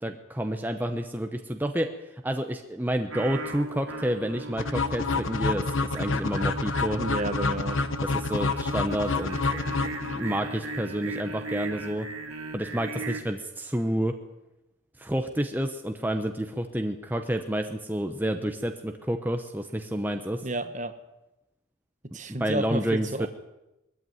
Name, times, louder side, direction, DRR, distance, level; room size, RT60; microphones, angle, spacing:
voice 1, 0.0-1.9 2.2-7.0 8.0-12.1 12.5-14.2 15.0-20.5 22.4-23.3, right 1 dB, 10° right, 6 dB, 0.9 m, -29 dB
Singing, 3.1-13.2, right 2 dB, 85° right, 2.4 m, -38 dB
sound 1, 4.6-10.5, left 3 dB, 65° left, 1.1 m, -28 dB
voice 2, 7.0-7.8 20.4-20.9 22.1-23.3, right 1 dB, 35° right, 10 dB, 1.3 m, -31 dB
20.0 x 14.0 x 9.3 m, 0.94 s
head